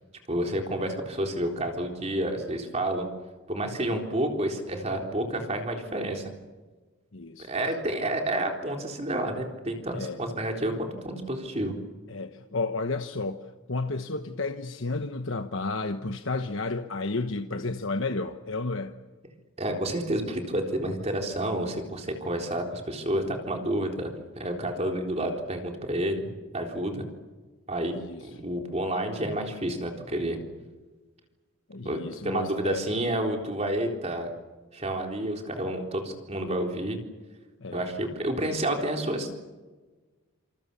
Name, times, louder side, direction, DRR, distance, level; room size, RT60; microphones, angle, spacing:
voice 1, 0.3-3.1 3.5-6.2 7.4-11.8 19.6-27.0 27.7-27.9 28.2-30.4 31.9-34.3 34.7-37.0 37.7-39.4, right 1 dB, 30° right, 3.9 m, -30 dB
voice 2, 7.1-7.5 9.9-10.2 12.1-18.9 27.9-28.3 31.7-32.8 37.6-37.9, left 3 dB, 65° left, 1.2 m, -32 dB
28.0 x 27.0 x 7.0 m
head